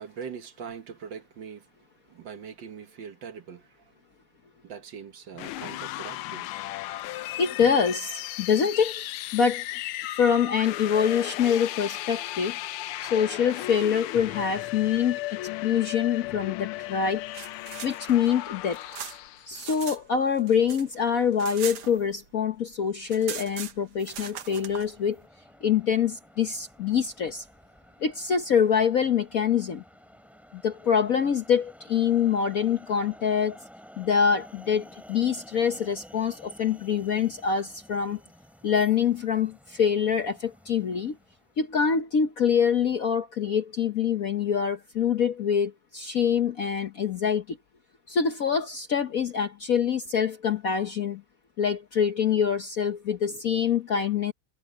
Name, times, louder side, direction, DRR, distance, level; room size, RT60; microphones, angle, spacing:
voice 1, 0.0-1.7 2.1-3.8 4.6-6.5 7.6-7.7, right 7 dB, 60° right, 1.8 m, -41 dB
sound 1, 5.3-19.5, left 16 dB, 80° left, 1.5 m, -35 dB
voice 2, 7.4-8.9 9.3-9.6 10.2-12.6 13.0-17.2 17.8-18.8 19.5-25.2 25.6-27.4 28.0-29.8 30.5-33.6 34.0-38.2 38.6-41.2 41.6-47.6 48.1-51.2 51.6-54.3, left 7 dB, 50° left, 1.1 m, -25 dB
sound 2, 17.1-20.0 20.3-22.5 22.7-22.8 23.0-24.9, right 8 dB, 85° right, 2.3 m, -40 dB
sound 3, 24.0-41.5, equal, ahead, 4.0 m, -52 dB
omnidirectional pair, 2.4 m